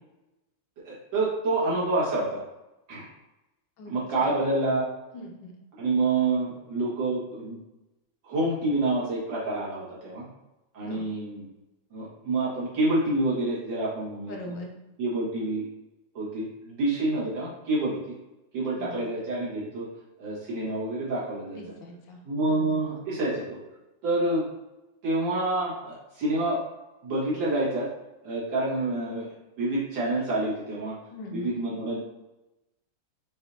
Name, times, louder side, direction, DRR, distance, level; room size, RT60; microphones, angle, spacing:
voice 1, 0.8-2.4 2.9-3.1 3.9-4.9 5.8-7.6 8.2-10.3 10.7-11.5 11.9-14.3 15.0-15.6 16.1-18.0 18.5-19.9 20.2-21.6 22.3-23.6 24.0-24.4 25.0-26.6 27.0-27.9 28.2-31.0 31.3-32.0, right 2 dB, 65° right, -7 dB, 2.4 m, -27 dB
voice 2, 5.1-5.5 10.8-11.1 14.3-14.7 18.6-19.1 21.5-22.2 22.5-22.8 31.1-31.6, left 1 dB, 65° left, 1 dB, 1.3 m, -41 dB
6.9 x 2.8 x 2.7 m, 0.98 s
omnidirectional pair, 2.3 m